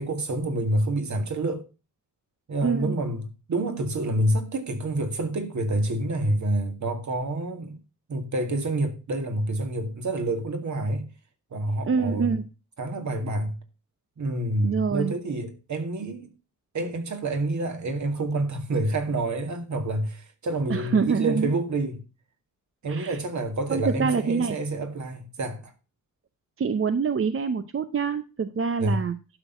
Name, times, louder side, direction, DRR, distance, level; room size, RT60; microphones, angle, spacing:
voice 1, 0.0-1.7 2.5-7.8 8.1-11.0 11.5-12.4 12.8-13.6 14.2-16.3 16.7-22.0 22.8-25.7 28.8-29.0, right 2 dB, 55° right, 2.3 m, -28 dB
voice 2, 2.6-2.9 11.8-12.4 14.6-15.1 20.7-21.5 22.9-23.2 23.7-24.6 26.6-29.2, right 5 dB, 40° right, 0.7 m, -25 dB
12.0 x 6.2 x 5.6 m
wide cardioid pair, 145°, 34 cm